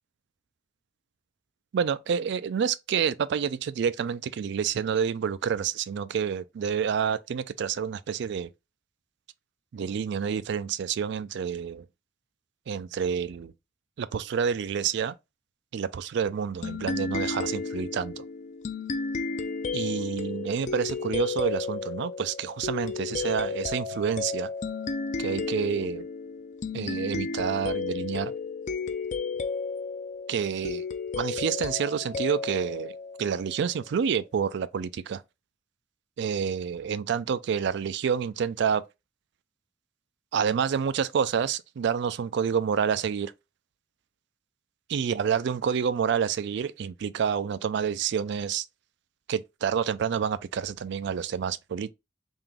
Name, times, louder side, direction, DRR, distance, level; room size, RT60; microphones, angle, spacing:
voice 1, 1.7-8.5 9.7-11.8 12.7-13.5 14.0-15.1 15.7-18.2 19.7-24.5 25.2-26.0 26.7-28.3 30.3-30.9 31.2-32.9 33.2-35.2 36.2-38.8 40.3-43.3 44.9-48.7 49.3-51.9, right 7 dB, 65° right, 0.3 m, -28 dB
sound 1, 16.6-33.8, left 4 dB, 40° left, 0.4 m, -33 dB
3.6 x 2.8 x 3.5 m
head